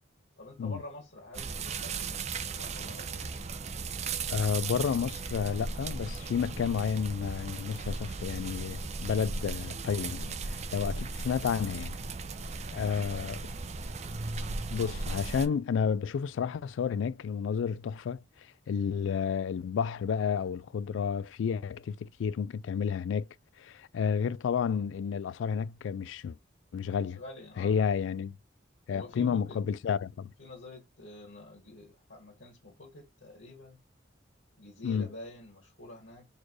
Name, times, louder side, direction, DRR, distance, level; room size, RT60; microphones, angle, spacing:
voice 1, 0.4-3.3 12.6-13.5 27.1-27.7 28.9-29.6 30.4-33.8 34.6-36.3, left 2 dB, 65° left, 1.8 m, -48 dB
sound 1, 1.3-15.5, right 4 dB, 35° right, 0.5 m, -37 dB
voice 2, 4.3-12.0 12.7-13.4 14.7-18.2 18.7-23.3 23.6-26.4 26.7-27.2 27.6-28.3 28.9-30.3 34.8-35.1, left 6 dB, 85° left, 0.3 m, -31 dB
4.2 x 3.2 x 3.0 m
head